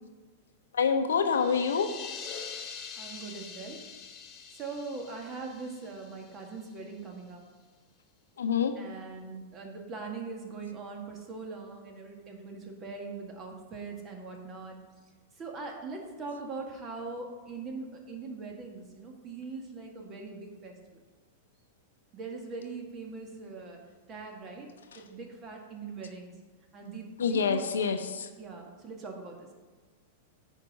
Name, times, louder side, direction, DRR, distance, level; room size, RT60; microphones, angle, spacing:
voice 1, 0.7-1.9 8.4-8.8 24.9-25.0 27.2-28.3, left 6 dB, 80° left, 8 dB, 0.7 m, -27 dB
sound 1, 1.2-6.8, left 6 dB, 40° left, 1.1 m, -44 dB
voice 2, 3.0-3.8 4.5-7.4 8.8-14.8 15.4-21.0 22.1-23.8 24.1-24.7 25.0-26.3 26.7-27.9 28.4-29.5, right 4 dB, 30° right, 2 dB, 1.9 m, -41 dB
9.5 x 4.5 x 5.4 m, 1.4 s
hypercardioid pair, 105°, 0 cm